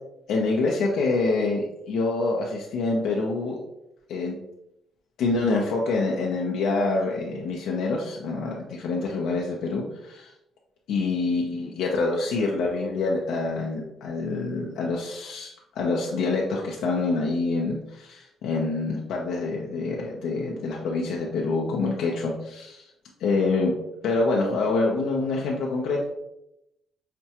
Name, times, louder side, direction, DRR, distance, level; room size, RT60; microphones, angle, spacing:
voice 1, 0.3-3.6 4.1-4.3 5.2-10.3 10.9-22.9 23.2-23.7 24.0-26.0, left 3 dB, 85° left, -2 dB, 0.6 m, -26 dB
5.8 x 2.2 x 2.8 m, 0.84 s
cardioid pair, 90°, 0 cm